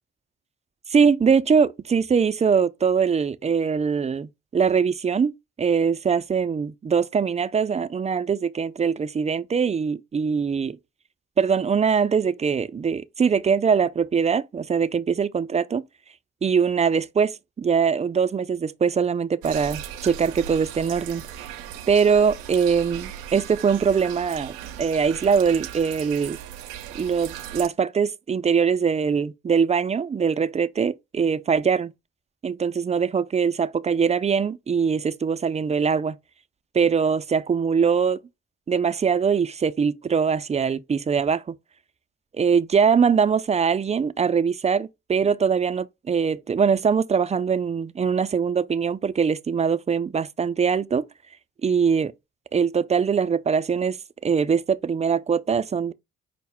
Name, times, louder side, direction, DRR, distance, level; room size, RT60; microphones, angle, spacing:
voice 1, 0.9-5.3 5.6-10.8 11.4-15.8 16.4-21.2 21.9-26.4 27.0-31.9 32.4-36.2 36.7-38.2 38.7-41.6 42.3-51.0 51.6-52.1 52.5-55.9, right 6 dB, 20° right, 0.4 m, -22 dB
sound 1, 19.4-27.7, right 10 dB, 85° right, 0.5 m, -37 dB
5.6 x 2.0 x 3.4 m
hypercardioid pair, 50°, 31 cm